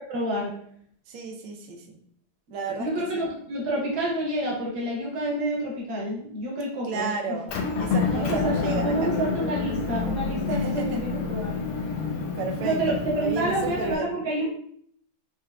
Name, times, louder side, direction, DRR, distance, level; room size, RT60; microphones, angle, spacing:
voice 1, 0.1-0.5 2.7-7.4 8.1-11.6 12.6-14.7, right 1 dB, 55° right, -3 dB, 1.3 m, -28 dB
voice 2, 1.1-2.0 2.5-2.9 3.1-3.2 6.9-7.5 7.8-9.1 10.5-11.0 12.4-14.2, right 5 dB, 75° right, 2 dB, 1.4 m, -33 dB
Motor vehicle (road) / Engine, 7.5-13.9, left 4 dB, 80° left, 1.5 m, -28 dB
4.7 x 3.2 x 2.2 m, 0.64 s
omnidirectional pair, 2.4 m